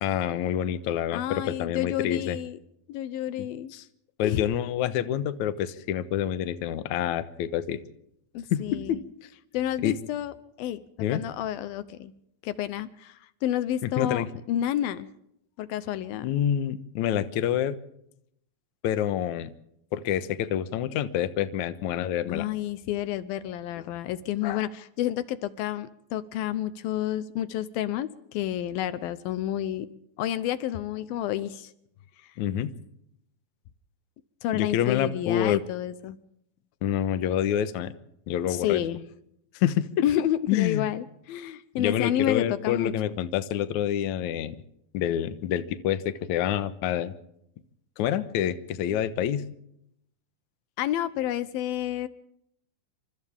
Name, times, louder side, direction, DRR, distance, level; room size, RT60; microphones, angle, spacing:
voice 1, 0.0-2.4 3.4-3.8 4.2-7.8 8.5-9.0 9.8-10.0 11.0-11.2 13.8-14.3 16.2-17.8 18.8-19.5 19.9-22.5 32.4-32.7 34.5-35.6 36.8-37.9 38.3-38.8 39.5-39.9 40.5-40.9 41.8-44.6 44.9-47.1 48.0-49.5, left 10 dB, 65° left, 12 dB, 2.2 m, -27 dB
voice 2, 1.1-2.6 2.9-3.7 4.2-4.5 8.3-9.0 9.5-10.8 11.1-12.1 12.4-15.1 15.6-16.3 22.3-29.9 30.2-31.7 34.4-36.2 38.5-39.0 40.0-42.9 50.8-52.1, left 12 dB, 80° left, 14 dB, 2.7 m, -30 dB
28.5 x 26.5 x 3.6 m, 0.74 s
omnidirectional pair, 4.2 m